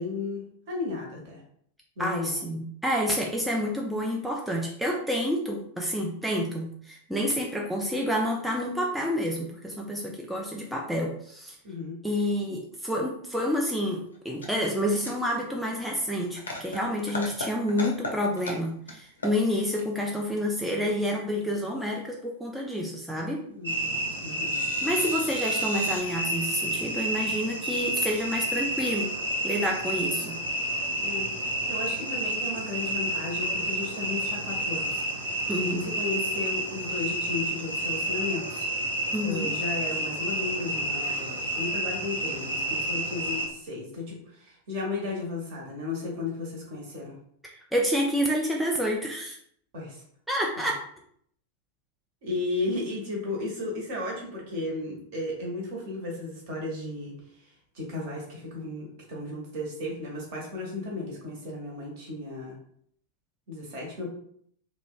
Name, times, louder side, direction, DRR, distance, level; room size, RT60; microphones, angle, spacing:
voice 1, 0.0-1.4 2.0-2.4 11.6-12.0 23.5-24.6 31.0-31.3 31.7-35.0 35.6-38.6 39.2-47.1 49.7-50.0 50.6-50.7 52.2-57.1 57.7-62.5 63.5-64.1, left 3 dB, 50° right, -1 dB, 0.9 m, -34 dB
voice 2, 2.0-11.6 12.0-23.4 24.8-29.1 29.4-30.4 35.5-35.9 39.1-39.5 47.4-49.4 50.3-50.8, equal, ahead, -1 dB, 0.3 m, -29 dB
sound 1, 13.7-13.8 14.0-15.4 15.6-15.7 16.2-16.8 17.1-18.1 18.4-18.9 19.2-19.9 21.6-21.9 23.1-23.2 23.4-23.5 24.0-24.1 24.4-26.0, left 2 dB, 75° left, 0.5 m, -37 dB
sound 2, 23.6-43.5, right 1 dB, 80° right, 0.6 m, -30 dB
2.9 x 2.1 x 2.4 m, 0.65 s
figure-of-eight pair, 90°, 0 cm